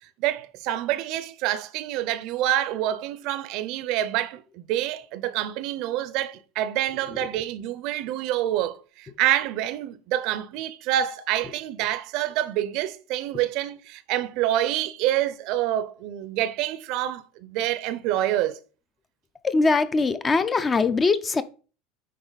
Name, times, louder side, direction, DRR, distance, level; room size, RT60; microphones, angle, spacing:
voice 1, 0.2-18.6, right 13 dB, 50° right, 0.6 m, -27 dB
voice 2, 19.4-21.4, left 4 dB, 15° left, 0.4 m, -22 dB
9.2 x 3.9 x 4.0 m
cardioid pair, 165°, 0 cm